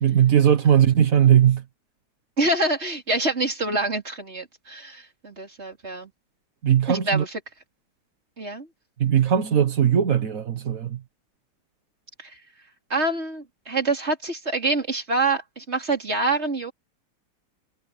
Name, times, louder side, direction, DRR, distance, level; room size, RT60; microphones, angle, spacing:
voice 1, 0.0-1.6 6.6-7.2 9.0-11.0, right 9 dB, 45° right, 1.4 m, -19 dB
voice 2, 2.4-6.1 6.9-7.4 8.4-8.7 12.2-12.4 12.9-16.7, right 2 dB, 30° right, 4.1 m, -26 dB
omnidirectional pair, 2.4 m